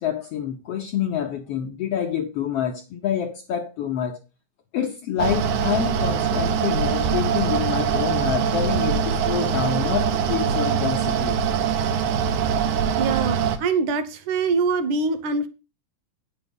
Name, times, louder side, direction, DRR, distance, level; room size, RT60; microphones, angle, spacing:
voice 1, 0.0-4.2 4.7-11.4, left 9 dB, 75° left, 1.4 m, -27 dB
Mechanical fan, 5.2-13.6, right 7 dB, 90° right, 2.7 m, -23 dB
voice 2, 13.0-15.5, right 4 dB, 70° right, 2.4 m, -24 dB
9.5 x 6.8 x 5.3 m
omnidirectional pair, 3.7 m